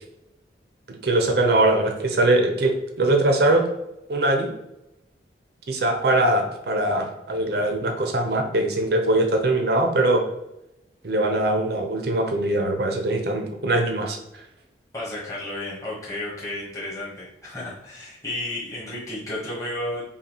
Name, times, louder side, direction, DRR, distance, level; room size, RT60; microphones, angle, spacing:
voice 1, 0.9-3.6 4.1-4.5 5.7-10.2 11.0-14.2, right 1 dB, 60° right, 3 dB, 0.7 m, -22 dB
voice 2, 14.9-20.0, left 1 dB, 20° left, -7 dB, 1.1 m, -32 dB
5.4 x 2.3 x 2.9 m, 0.88 s
head